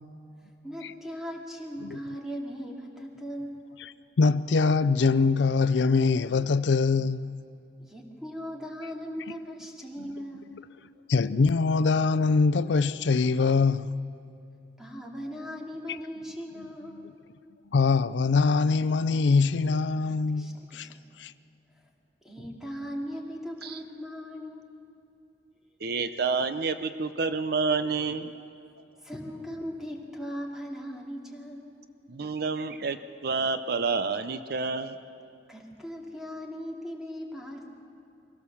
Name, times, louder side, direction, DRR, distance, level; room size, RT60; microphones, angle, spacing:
voice 1, 0.6-3.7 7.8-10.5 14.8-17.2 20.3-21.0 22.2-24.8 29.0-31.8 35.5-37.7, equal, 5° right, 2.4 m, -39 dB
voice 2, 3.8-7.4 10.0-10.1 11.1-14.0 17.7-20.9 21.2-21.3, left 4 dB, 75° left, 0.5 m, -23 dB
voice 3, 25.8-28.5 32.1-35.0, right 4 dB, 60° right, 0.7 m, -29 dB
23.5 x 17.0 x 7.1 m
head